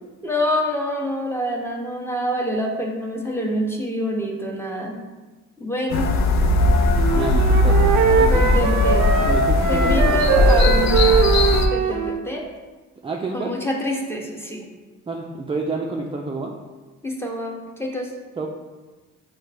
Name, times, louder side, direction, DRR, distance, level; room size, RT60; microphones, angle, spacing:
voice 1, 0.2-5.0 5.6-6.1 8.3-9.4 9.7-11.3 11.7-12.5 13.3-14.7 17.0-18.1, equal, 10° left, 0 dB, 0.7 m, -26 dB
sound 1, 5.9-11.7, left 2 dB, 65° left, 0.5 m, -18 dB
Wind instrument woodwind instrument, 7.0-12.2, right 6 dB, 75° right, 0.5 m, -21 dB
voice 2, 7.1-8.5 9.2-10.2 13.0-13.5 15.1-16.5 18.4-18.5, right 3 dB, 20° right, 0 dB, 0.4 m, -28 dB
6.1 x 2.2 x 3.3 m, 1.3 s
cardioid pair, 90°, 30 cm